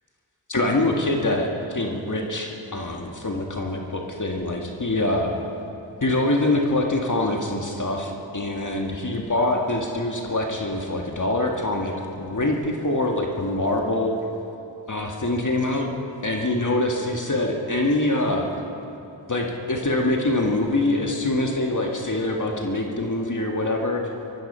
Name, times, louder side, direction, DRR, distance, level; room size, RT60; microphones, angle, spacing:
voice 1, 0.5-5.3 6.0-14.2 14.9-15.9 16.2-18.5 19.3-24.1, left 2 dB, 40° left, 1 dB, 1.8 m, -24 dB
19.5 x 13.5 x 5.6 m, 2.9 s
cardioid pair, 45°, 46 cm